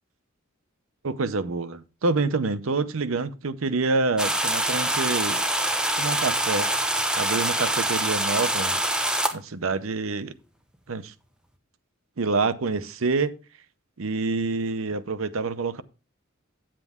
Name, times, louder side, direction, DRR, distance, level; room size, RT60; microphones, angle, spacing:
voice 1, 1.0-5.4 6.0-6.7 7.2-8.8 9.3-10.3 10.9-11.1 12.2-13.4 14.0-15.8, right 3 dB, 90° right, 0.7 m, -27 dB
sound 1, 4.2-9.3, right 1 dB, 5° right, 0.8 m, -25 dB
9.4 x 7.6 x 3.5 m
head